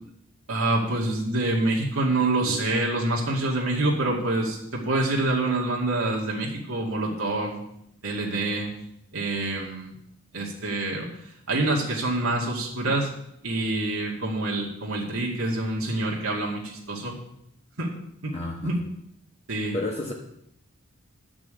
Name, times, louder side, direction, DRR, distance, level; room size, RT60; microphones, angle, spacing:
voice 1, 0.5-7.6 8.0-8.7 9.1-10.0 10.3-11.1 11.5-13.1 13.4-17.2 17.8-17.9 18.2-18.3 18.6-18.8 19.5-19.8, right 2 dB, 80° right, -2 dB, 2.2 m, -26 dB
voice 2, 18.3-18.7 19.7-20.1, left 2 dB, 30° left, -2 dB, 1.2 m, -31 dB
11.0 x 6.2 x 7.6 m, 0.76 s
head